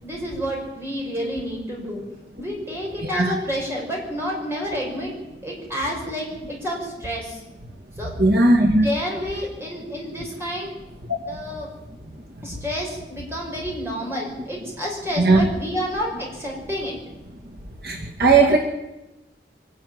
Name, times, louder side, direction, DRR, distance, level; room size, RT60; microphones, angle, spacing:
voice 1, 0.0-2.0 2.4-5.1 5.4-7.4 8.0-10.7 11.2-11.7 12.4-16.9, equal, 15° right, -2 dB, 6.3 m, -29 dB
voice 2, 8.2-8.9 15.2-15.4 17.8-18.6, right 3 dB, 60° right, 1 dB, 2.3 m, -16 dB
23.5 x 11.5 x 9.7 m, 1.0 s
head